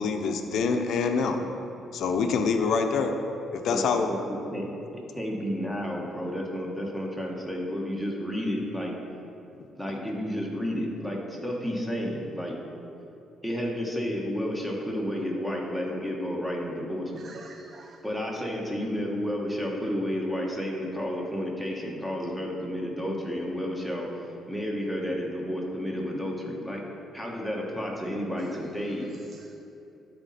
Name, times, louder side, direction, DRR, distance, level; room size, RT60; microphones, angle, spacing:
voice 1, 0.0-1.4 1.9-3.1 3.5-4.1, left 5 dB, 75° left, 5 dB, 0.6 m, -25 dB
voice 2, 3.7-4.7 4.9-8.9 9.8-12.6 13.4-17.3 18.0-24.1 24.5-26.8 27.1-29.1, equal, ahead, -1 dB, 1.4 m, -31 dB
voice 3, 17.2-18.0 28.4-29.5, right 4 dB, 50° right, 5 dB, 0.4 m, -50 dB
11.5 x 4.2 x 4.2 m, 2.8 s
cardioid pair, 90°, 0 cm